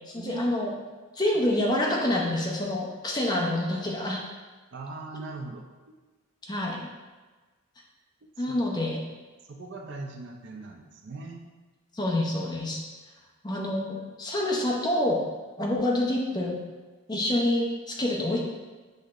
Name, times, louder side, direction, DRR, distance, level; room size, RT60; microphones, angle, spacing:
voice 1, 0.1-0.7 1.1-4.2 6.4-6.9 8.4-9.0 11.9-12.8 13.4-15.2 15.6-16.6 17.1-18.4, left 1 dB, 20° left, -2 dB, 0.6 m, -27 dB
voice 2, 4.7-6.0 8.2-8.9 9.5-11.5, right 3 dB, 55° right, 2 dB, 0.4 m, -40 dB
6.3 x 3.1 x 2.5 m, 1.3 s
head